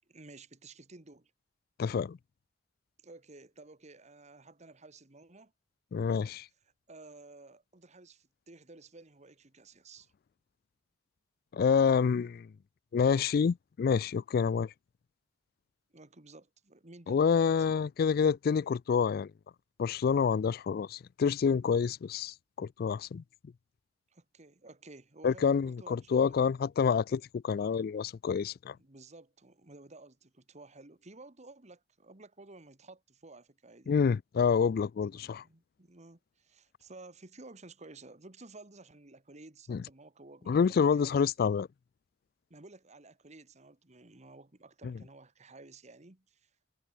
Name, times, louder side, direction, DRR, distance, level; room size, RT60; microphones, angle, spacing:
voice 1, 0.1-1.3 3.0-5.5 6.6-10.1 15.9-17.9 24.1-26.4 28.8-33.9 35.1-41.2 42.5-46.5, right 2 dB, 40° right, 1.7 m, -53 dB
voice 2, 1.8-2.2 5.9-6.5 11.5-12.5 12.9-14.7 17.1-19.3 19.8-23.2 25.2-28.7 33.9-35.4 39.7-39.8 40.5-41.7, left 6 dB, 55° left, 0.3 m, -28 dB
head